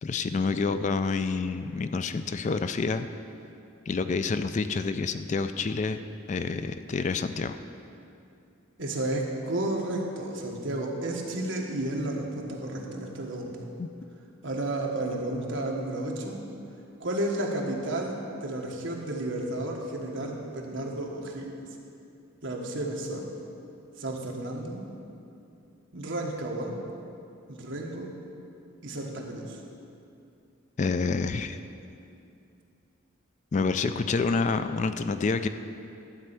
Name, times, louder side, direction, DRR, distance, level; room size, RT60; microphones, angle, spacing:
voice 1, 0.0-3.1 3.9-6.0 6.3-7.6 13.8-13.9 30.8-31.6 33.5-35.5, left 4 dB, 35° left, 10 dB, 0.3 m, -28 dB
voice 2, 8.8-13.6 14.4-16.4 17.0-21.6 22.4-23.3 24.0-24.8 25.9-26.7 27.5-28.2 28.8-29.6, right 1 dB, 65° right, -1 dB, 1.4 m, -32 dB
12.5 x 4.3 x 8.2 m, 2.6 s
head